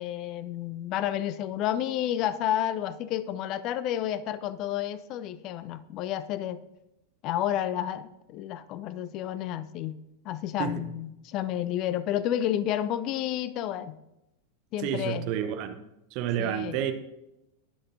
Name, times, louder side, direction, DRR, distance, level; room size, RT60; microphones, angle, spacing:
voice 1, 0.0-6.6 7.2-10.0 10.2-14.0 14.7-15.3 16.4-16.8, left 11 dB, 40° left, 16 dB, 0.4 m, -30 dB
voice 2, 14.8-15.8 16.1-16.9, right 9 dB, 45° right, 8 dB, 0.8 m, -30 dB
19.0 x 6.4 x 2.7 m, 0.91 s
figure-of-eight pair, 90°, 0 cm